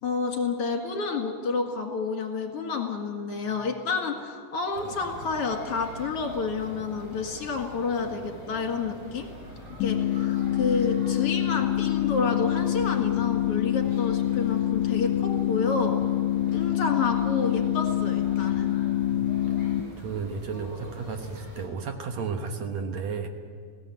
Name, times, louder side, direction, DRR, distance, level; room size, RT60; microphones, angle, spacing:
voice 1, 0.0-9.3 9.8-16.0 16.5-18.7, left 4 dB, 50° left, 3 dB, 2.7 m, -29 dB
sound 1, 4.7-21.7, equal, 20° right, 7.3 m, -44 dB
sound 2, 9.8-19.8, left 12 dB, 75° left, 2.1 m, -26 dB
voice 2, 19.1-19.6 20.0-23.3, right 5 dB, 65° right, 5 dB, 2.3 m, -33 dB
20.5 x 16.5 x 9.3 m, 2.1 s
omnidirectional pair, 3.6 m